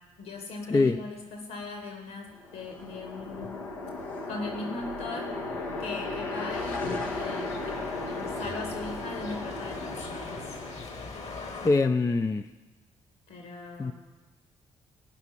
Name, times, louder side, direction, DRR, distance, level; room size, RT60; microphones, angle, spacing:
voice 1, 0.2-3.6 4.3-5.4 5.8-7.8 8.1-10.6 13.3-13.9, left 3 dB, 65° left, 3 dB, 2.4 m, -39 dB
sound 1, 2.3-11.4, left 2 dB, 80° left, 1.1 m, -35 dB
sound 2, 6.5-11.7, left 3 dB, 40° left, 1.4 m, -42 dB
voice 2, 11.6-12.4 13.8-13.9, left 3 dB, 20° left, 9 dB, 0.4 m, -23 dB
16.5 x 5.8 x 7.2 m, 1.2 s
figure-of-eight pair, 40°, 17 cm